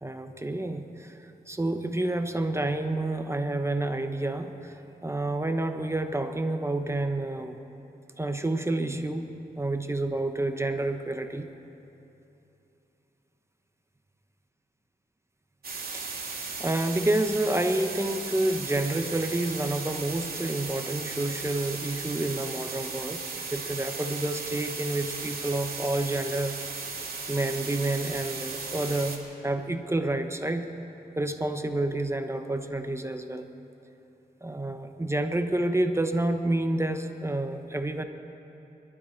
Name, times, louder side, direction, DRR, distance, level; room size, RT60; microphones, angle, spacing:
voice 1, 0.0-4.8 5.0-7.6 8.2-9.3 9.6-11.5 15.9-16.1 16.6-23.2 23.5-26.6 27.3-30.7 31.2-33.5 34.4-38.0, right 2 dB, 15° right, 6 dB, 0.9 m, -29 dB
sound 1, 15.6-29.2, right 4 dB, 65° right, 2.4 m, -36 dB
25.5 x 12.5 x 4.5 m, 3.0 s
cardioid pair, 70°, 17 cm